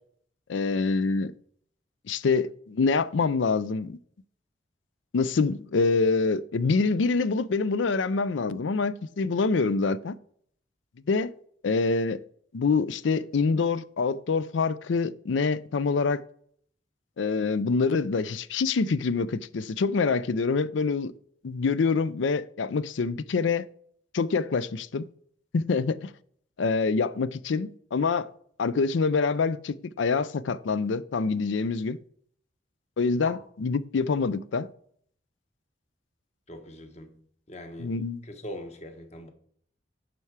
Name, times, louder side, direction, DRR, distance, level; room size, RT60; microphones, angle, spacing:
voice 1, 0.5-1.3 2.1-4.0 5.1-10.1 11.1-11.3 11.6-12.2 12.5-16.2 17.2-21.1 21.4-23.7 24.1-25.1 25.5-26.1 26.6-28.3 28.6-32.0 33.0-34.7 37.8-38.2, left 4 dB, 75° left, 0.5 m, -26 dB
voice 2, 36.5-39.3, left 1 dB, 35° left, 1.2 m, -42 dB
11.0 x 4.6 x 4.8 m
head